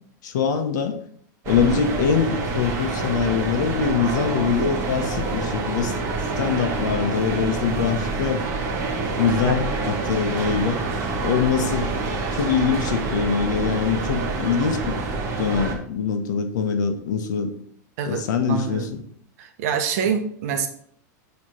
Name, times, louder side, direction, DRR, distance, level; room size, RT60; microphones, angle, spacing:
voice 1, 0.2-1.0 1.5-6.0 6.4-8.5 9.2-10.8 11.2-11.9 12.3-15.0 15.4-17.5 18.1-19.0, left 6 dB, 80° left, 7 dB, 1.1 m, -23 dB
sound 1, 1.4-15.7, right 3 dB, 25° right, 1.2 m, -27 dB
voice 2, 18.0-19.0 19.4-20.7, right 7 dB, 55° right, 6 dB, 1.1 m, -26 dB
7.9 x 3.3 x 5.6 m, 0.63 s
supercardioid pair, 170°, 10 cm